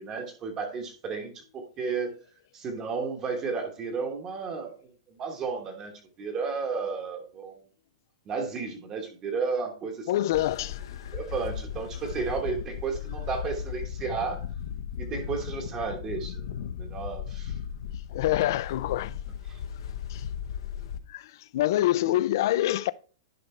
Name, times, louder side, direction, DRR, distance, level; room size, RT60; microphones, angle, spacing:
voice 1, 0.0-2.1 2.5-4.7 5.1-5.9 6.2-7.6 8.3-10.3 11.1-14.4 15.0-16.4 16.8-17.5 19.5-19.6, right 5 dB, 20° right, 1.1 m, -33 dB
voice 2, 10.1-10.8 18.1-19.2 20.1-20.2 21.1-22.9, left 14 dB, 45° left, 0.4 m, -26 dB
sound 1, 10.3-21.0, left 8 dB, 60° left, 0.9 m, -36 dB
10.5 x 5.2 x 3.2 m
supercardioid pair, 180°, 3 cm